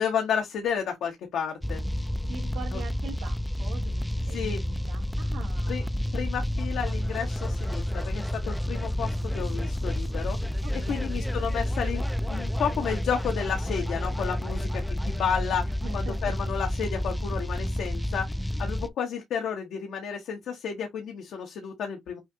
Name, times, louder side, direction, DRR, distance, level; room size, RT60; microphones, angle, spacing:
voice 1, 0.0-1.8 4.3-4.6 5.7-5.8 6.1-10.4 10.9-12.0 12.3-18.3 18.6-22.2, left 7 dB, 75° left, 1.1 m, -31 dB
Structual Trp Noise, 1.6-18.9, left 1 dB, 5° left, 0.5 m, -30 dB
voice 2, 2.3-5.9 10.6-11.3 15.8-16.3, right 4 dB, 85° right, 2.3 m, -43 dB
6.2 x 2.6 x 2.8 m
cardioid pair, 90°, 0 cm